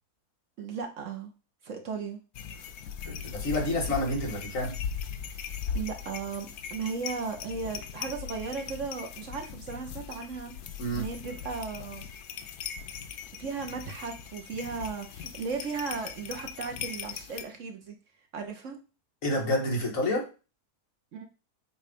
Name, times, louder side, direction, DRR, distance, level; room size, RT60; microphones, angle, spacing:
voice 1, 0.6-1.3 1.6-2.2 5.7-10.5 10.9-12.1 13.4-17.9 18.3-18.8 21.1-21.3, right 5 dB, 60° right, 4 dB, 1.2 m, -36 dB
sound 1, 2.3-17.4, left 7 dB, 85° left, 1.2 m, -39 dB
voice 2, 3.1-4.8 10.8-11.0 19.2-20.3, left 1 dB, 60° left, -1 dB, 2.0 m, -29 dB
7.5 x 2.5 x 5.1 m, 0.32 s
omnidirectional pair, 1.6 m